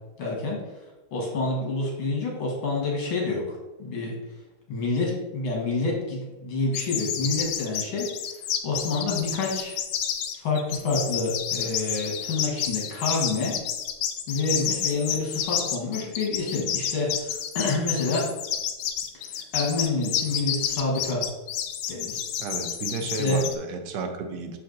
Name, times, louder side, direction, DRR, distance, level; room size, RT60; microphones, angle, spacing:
voice 1, 0.2-0.6 1.1-4.2 4.7-8.1 8.6-9.8 10.4-13.6 14.3-18.2 19.1-21.2 21.9-22.2 23.2-23.4, left 3 dB, 65° left, -1 dB, 2.2 m, -28 dB
sound 1, 6.7-23.5, left 9 dB, 85° left, 1.6 m, -30 dB
voice 2, 22.4-24.6, right 4 dB, 65° right, 5 dB, 1.1 m, -32 dB
6.5 x 4.4 x 3.9 m, 1.1 s
omnidirectional pair, 2.4 m